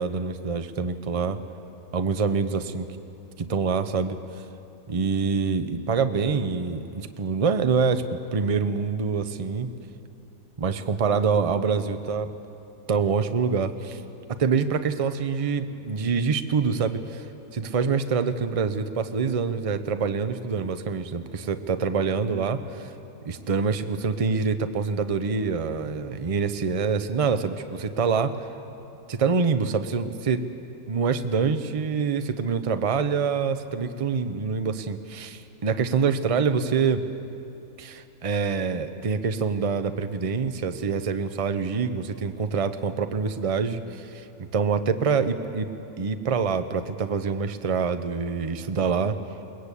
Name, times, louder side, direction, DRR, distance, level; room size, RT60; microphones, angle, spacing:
voice 1, 0.0-1.4 1.9-2.9 3.4-4.2 4.9-9.7 10.6-12.3 12.9-14.0 14.4-17.3 17.5-22.9 23.2-28.5 29.1-30.4 30.9-37.0 37.8-44.3 44.5-45.7 46.0-49.2, right 5 dB, 30° right, 9 dB, 0.7 m, -25 dB
21.5 x 20.5 x 8.4 m, 2.8 s
omnidirectional pair, 1.5 m